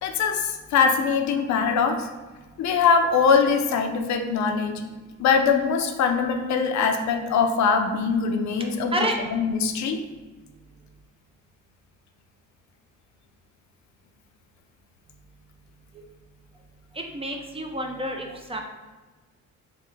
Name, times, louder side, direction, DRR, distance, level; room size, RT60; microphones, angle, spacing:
voice 1, 0.0-2.1 2.6-4.8 5.2-10.0, left 5 dB, 65° left, 6 dB, 0.5 m, -22 dB
voice 2, 17.0-18.6, right 1 dB, 20° right, 3 dB, 0.3 m, -29 dB
3.3 x 2.1 x 3.1 m, 1.3 s
cardioid pair, 90°, 30 cm